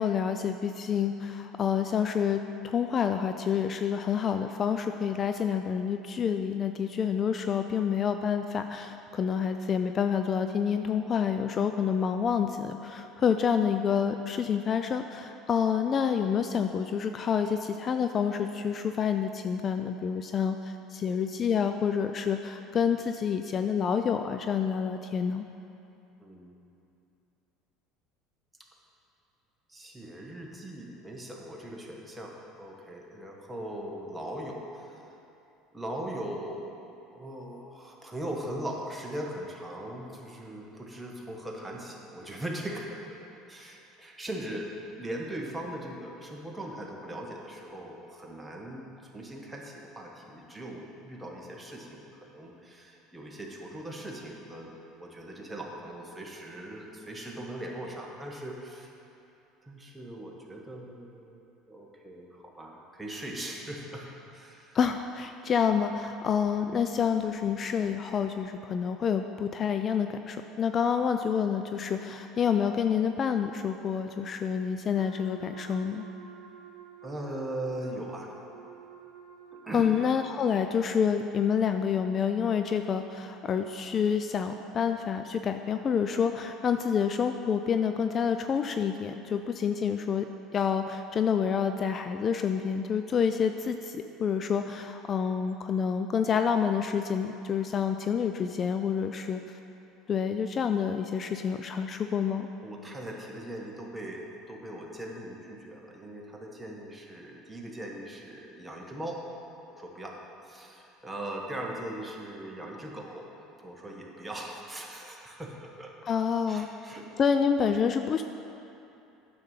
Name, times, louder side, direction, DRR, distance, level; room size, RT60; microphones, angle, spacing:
voice 1, 0.0-25.5 64.7-76.0 79.7-90.2 90.5-99.6 100.1-102.5 116.0-116.7 117.2-118.2, left 7 dB, 40° left, 7 dB, 0.4 m, -28 dB
voice 2, 26.2-26.5 29.7-35.0 35.7-36.8 37.1-43.2 43.5-44.7 45.0-58.9 59.6-64.8 77.0-78.4 79.5-79.9 102.6-109.2 109.7-110.2 110.4-113.3 113.6-115.9 116.5-117.1, right 1 dB, 10° right, -1 dB, 1.6 m, -40 dB
Wind instrument woodwind instrument, 74.9-80.7, right 8 dB, 75° right, 1.2 m, -50 dB
9.4 x 6.9 x 5.8 m, 2.8 s
hypercardioid pair, 85°, 0 cm